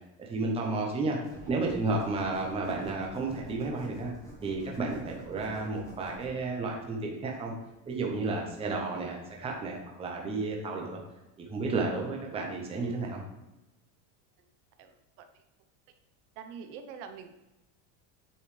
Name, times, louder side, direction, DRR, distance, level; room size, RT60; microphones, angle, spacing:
voice 1, 0.2-1.2 1.5-4.1 4.4-7.5 7.9-11.0 11.4-13.2, right 3 dB, 15° right, 0 dB, 0.8 m, -32 dB
sound 1, 1.2-9.8, right 1 dB, 5° left, 1.2 m, -50 dB
voice 2, 14.8-15.3 16.4-17.3, right 6 dB, 70° right, 8 dB, 1.0 m, -44 dB
8.3 x 5.4 x 3.3 m, 0.99 s
cardioid pair, 170°, 46 cm